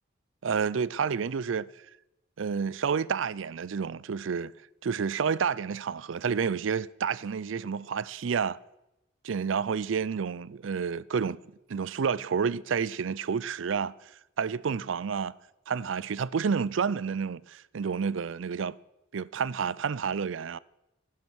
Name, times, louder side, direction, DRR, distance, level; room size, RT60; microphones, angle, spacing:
voice 1, 0.4-1.7 2.4-4.5 4.8-8.6 9.2-11.4 11.7-13.9 14.4-15.3 15.7-18.8 19.1-20.6, right 6 dB, 80° right, 0.5 m, -29 dB
15.0 x 11.5 x 6.3 m
head